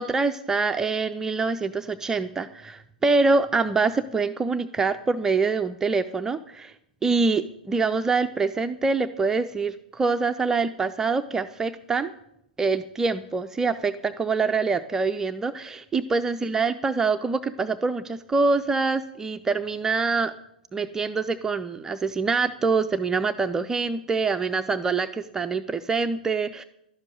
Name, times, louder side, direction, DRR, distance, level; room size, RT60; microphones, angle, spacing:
voice 1, 0.0-6.7 7.0-12.1 12.6-20.3 20.7-26.6, right 4 dB, 10° right, 9 dB, 0.4 m, -25 dB
12.0 x 7.5 x 9.0 m, 0.82 s
figure-of-eight pair, 105°, 5 cm